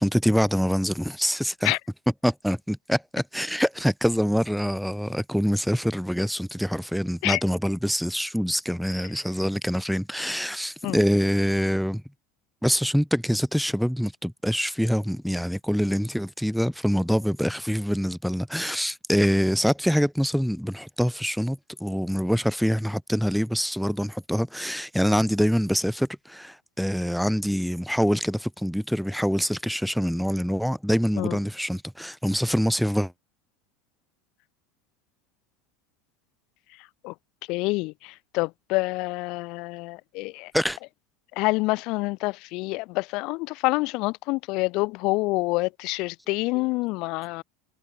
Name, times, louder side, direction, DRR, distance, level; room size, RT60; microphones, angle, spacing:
voice 1, 0.0-1.8 2.1-12.0 12.6-33.1 40.5-40.8, equal, ahead, 0.9 m, -25 dB
voice 2, 36.8-37.1 37.5-40.5 41.3-47.4, left 24 dB, 60° left, 1.4 m, -27 dB
hypercardioid pair, 85°, 0 cm